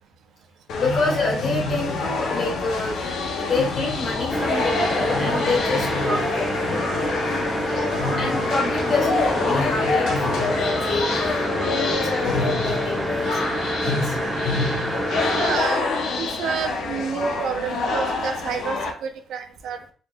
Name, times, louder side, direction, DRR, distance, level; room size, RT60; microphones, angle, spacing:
sound 1, 0.7-18.9, left 3 dB, 80° left, 0.7 m, -26 dB
voice 1, 0.8-6.5 7.6-13.4 13.8-14.2, left 3 dB, 55° left, -2 dB, 1.9 m, -28 dB
sound 2, 4.3-15.6, equal, ahead, 0.9 m, -27 dB
voice 2, 15.3-15.9 16.2-19.8, right 6 dB, 75° right, 6 dB, 0.6 m, -29 dB
4.1 x 3.2 x 2.3 m, 0.41 s
cardioid pair, 90°, 0 cm